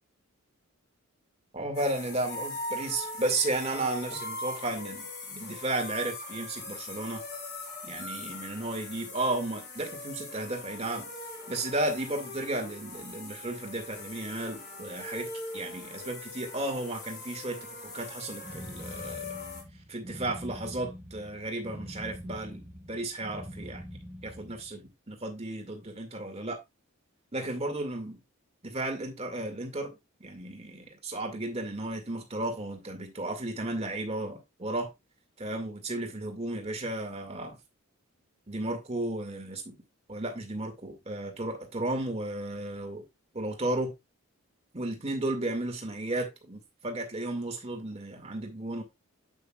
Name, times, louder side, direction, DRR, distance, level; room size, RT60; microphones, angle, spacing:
voice 1, 1.5-7.2 7.8-11.1 11.5-15.3 15.5-19.3 19.9-23.9 24.2-26.6 27.3-28.2 28.6-34.9 35.4-37.6 38.5-39.8 40.1-43.0 43.3-43.9 44.7-48.8, right 2 dB, 30° right, 2.1 m, -34 dB
sound 1, 1.7-19.6, left 2 dB, 50° left, 4.0 m, -41 dB
sound 2, 18.4-24.7, equal, 10° right, 1.4 m, -44 dB
8.4 x 8.0 x 2.4 m
head